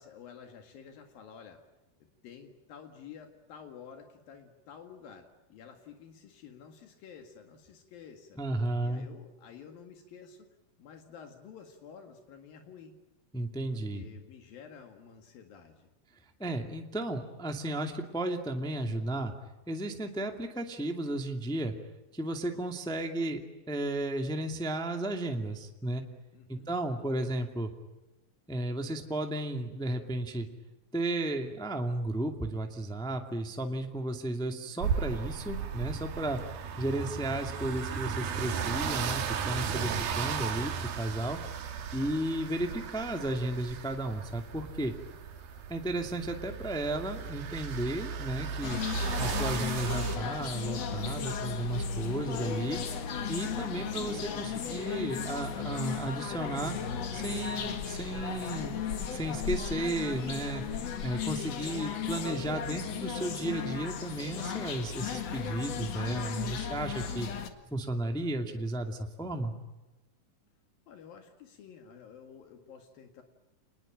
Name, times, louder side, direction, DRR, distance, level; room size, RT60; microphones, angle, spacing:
voice 1, 0.0-1.6 2.2-8.4 8.8-10.5 10.8-13.0 13.7-15.9 26.3-26.7 70.9-73.2, left 7 dB, 80° left, 5 dB, 3.7 m, -51 dB
voice 2, 8.4-9.1 13.3-14.0 16.4-19.3 19.7-21.7 22.1-23.4 23.7-26.0 26.5-27.7 28.5-30.5 30.9-36.4 36.8-41.4 41.9-44.9 45.7-48.8 49.2-52.8 53.3-56.7 57.1-58.8 59.1-60.6 61.0-67.3 67.7-69.5, right 1 dB, ahead, 4 dB, 1.6 m, -34 dB
sound 1, 34.8-50.2, right 7 dB, 80° right, 3.7 m, -36 dB
sound 2, 48.6-67.5, left 6 dB, 50° left, 2.7 m, -35 dB
28.5 x 21.0 x 9.1 m, 1.1 s
omnidirectional pair, 4.1 m